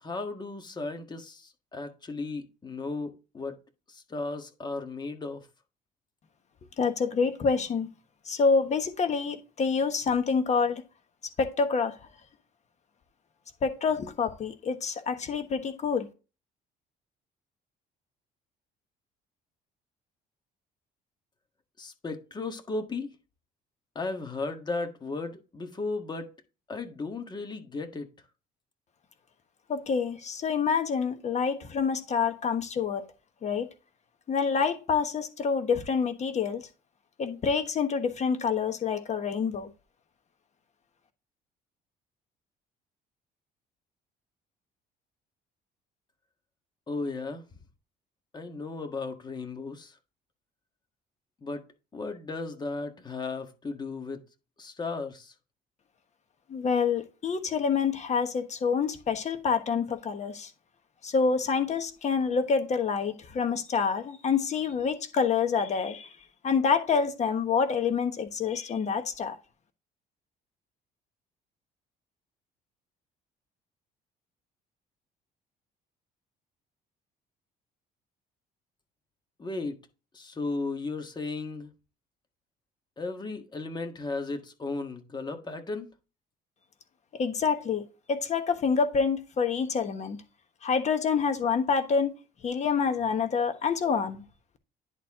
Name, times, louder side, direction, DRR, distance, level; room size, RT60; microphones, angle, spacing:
voice 1, 0.0-3.6 3.9-5.4 21.8-23.1 23.9-26.3 26.7-28.1 46.9-47.4 48.3-49.9 51.4-51.6 51.9-54.2 54.6-55.3 79.4-79.8 80.1-81.7 83.0-85.9, left 3 dB, 25° left, 1.6 m, -35 dB
voice 2, 6.8-7.9 8.3-10.8 11.4-12.0 13.6-16.1 29.7-33.0 33.4-33.7 34.3-36.7 37.2-39.7 56.5-60.5 61.0-66.2 66.4-69.4 87.1-90.2 90.6-92.1 92.4-94.2, left 5 dB, 45° left, 1.2 m, -27 dB
10.5 x 4.4 x 3.6 m
cardioid pair, 110°, 17 cm